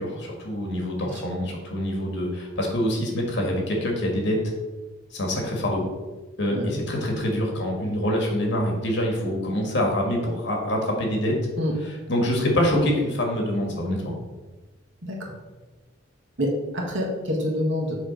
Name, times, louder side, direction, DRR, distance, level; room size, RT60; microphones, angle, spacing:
voice 1, 0.0-4.4 5.1-5.9 6.4-11.3 12.1-14.1, equal, 60° left, 0 dB, 1.7 m, -25 dB
voice 2, 6.5-6.8 11.6-11.7 15.0-15.2 16.4-16.5 16.7-18.0, left 1 dB, 65° right, -1 dB, 1.6 m, -27 dB
7.2 x 3.5 x 5.2 m, 1.2 s
head